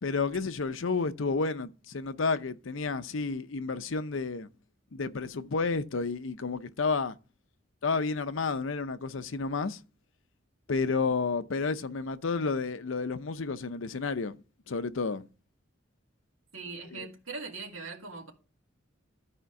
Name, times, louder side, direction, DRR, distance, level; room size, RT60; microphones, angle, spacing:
voice 1, 0.0-4.5 4.9-7.1 7.8-9.8 10.7-14.4 14.7-15.2 16.9-17.1, left 4 dB, 70° left, 0.7 m, -31 dB
voice 2, 16.5-18.3, right 4 dB, 80° right, 2.6 m, -40 dB
13.0 x 5.1 x 4.7 m
head